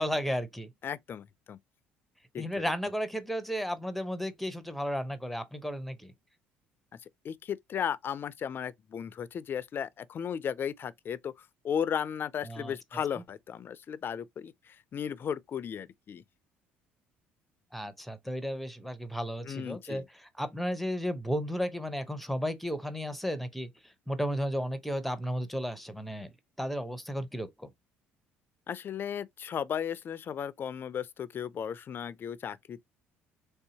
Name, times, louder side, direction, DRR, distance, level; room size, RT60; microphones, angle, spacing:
voice 1, 0.0-0.7 2.4-6.1 12.4-12.7 17.7-23.7 24.1-26.3 26.6-27.7, equal, ahead, 0.7 m, -33 dB
voice 2, 0.8-1.6 2.3-2.6 7.2-11.3 11.6-16.2 19.4-20.1 28.7-32.8, left 8 dB, 45° left, 0.4 m, -35 dB
3.3 x 2.7 x 2.8 m
supercardioid pair, 80°, 5 cm